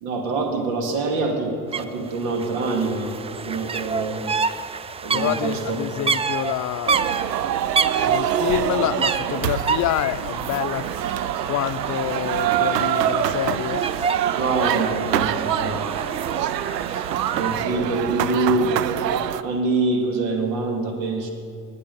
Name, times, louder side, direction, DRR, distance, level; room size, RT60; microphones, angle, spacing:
voice 1, 0.0-4.3 5.0-5.8 14.4-16.1 17.3-18.8 19.4-21.3, right 3 dB, 65° right, 3 dB, 2.3 m, -25 dB
sound 1, 1.7-1.8 2.1-17.6, right 5 dB, 15° right, 0.3 m, -29 dB
voice 2, 5.1-6.9 7.7-10.9 11.5-13.9 15.7-15.8, left 13 dB, 40° left, 14 dB, 0.6 m, -27 dB
sound 2, 6.9-19.4, right 10 dB, 85° right, 0.6 m, -25 dB
19.0 x 6.9 x 6.8 m, 2.3 s
hypercardioid pair, 60°, 47 cm